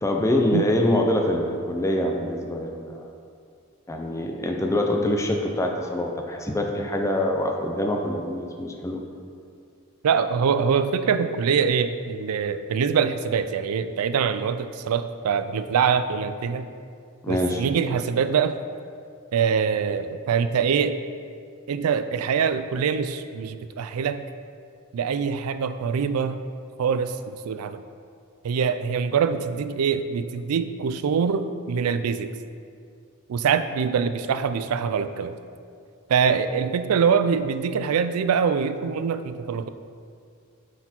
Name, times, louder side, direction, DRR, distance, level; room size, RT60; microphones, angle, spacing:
voice 1, 0.0-3.1 3.9-9.0 17.2-17.6, left 1 dB, 15° left, 2 dB, 0.5 m, -25 dB
voice 2, 10.0-16.7 17.3-18.6 19.3-21.0 21.7-24.2 24.9-26.4 26.8-27.8 28.4-32.3 33.3-35.4 36.1-39.7, right 6 dB, 85° right, 11 dB, 0.4 m, -24 dB
8.0 x 4.3 x 4.3 m, 2.3 s
head